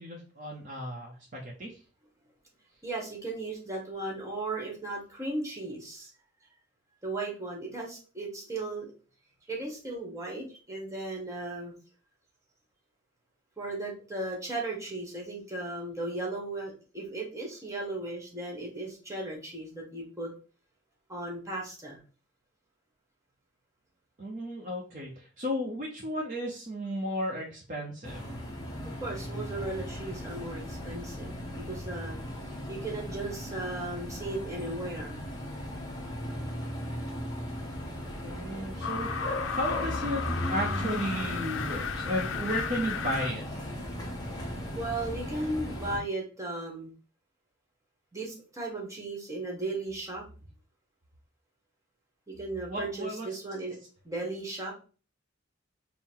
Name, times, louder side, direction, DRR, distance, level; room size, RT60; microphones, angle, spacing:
voice 1, 0.0-1.7 24.2-28.3 38.2-39.1 39.5-43.5 52.7-53.3, equal, 40° right, -2 dB, 0.7 m, -34 dB
voice 2, 2.8-6.1 7.0-8.9 9.5-11.7 13.6-20.3 21.1-22.0 29.0-32.2 32.7-35.2 44.7-46.9 48.1-50.2 52.3-53.8 54.0-54.7, right 2 dB, 15° right, -1 dB, 1.1 m, -36 dB
sound 1, 28.0-46.0, equal, 20° left, 0.8 m, -37 dB
sound 2, 38.8-43.3, left 6 dB, 70° left, 0.4 m, -34 dB
3.7 x 2.0 x 4.3 m, 0.37 s
head